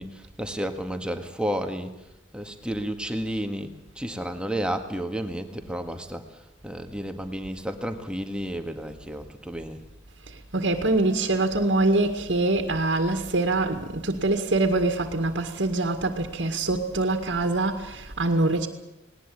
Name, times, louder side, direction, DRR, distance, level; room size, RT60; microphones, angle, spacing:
voice 1, 0.0-1.9 2.3-9.8, equal, 5° right, 1.8 m, -32 dB
voice 2, 10.3-18.7, right 2 dB, 80° right, 2.1 m, -24 dB
19.5 x 19.0 x 8.6 m
head